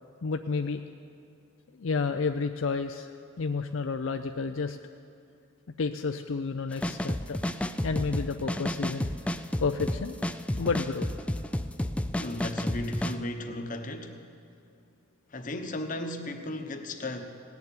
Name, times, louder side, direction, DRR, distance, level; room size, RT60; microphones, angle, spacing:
voice 1, 0.2-0.8 1.7-3.1 3.4-4.8 5.8-7.4 7.8-9.1 9.6-10.2 10.5-11.1, left 4 dB, 70° left, 7 dB, 0.5 m, -30 dB
sound 1, 6.7-13.1, left 1 dB, 5° left, 0.3 m, -31 dB
voice 2, 12.2-14.2 15.3-17.3, left 1 dB, 40° left, 5 dB, 1.0 m, -35 dB
18.0 x 7.1 x 9.6 m, 2.5 s
head